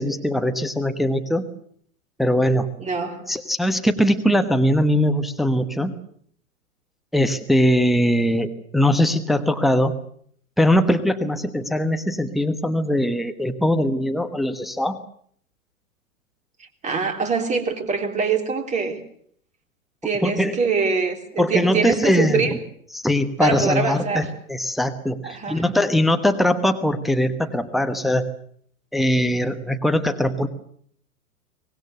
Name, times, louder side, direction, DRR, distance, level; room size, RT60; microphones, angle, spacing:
voice 1, 0.0-1.4 2.2-2.7 3.3-5.9 7.1-9.9 10.6-15.0 20.2-20.6 21.4-22.5 22.9-28.3 28.9-30.5, equal, ahead, 1.2 m, -21 dB
voice 2, 2.8-3.3 16.8-19.0 20.0-22.6 23.4-24.3 25.2-25.6, right 5 dB, 15° right, 3.5 m, -24 dB
24.0 x 20.0 x 8.0 m
figure-of-eight pair, 105°, 42 cm